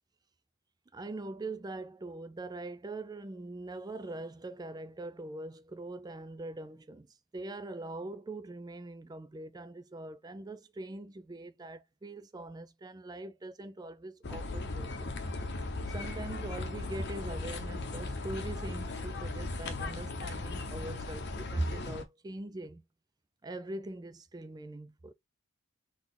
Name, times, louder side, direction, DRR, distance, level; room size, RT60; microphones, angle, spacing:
voice 1, 0.9-7.1 7.3-15.1 15.6-22.8 23.4-25.1, right 2 dB, 20° right, 0.3 m, -42 dB
sound 1, 14.2-22.0, left 2 dB, 50° left, 0.8 m, -37 dB
4.1 x 2.9 x 3.7 m
head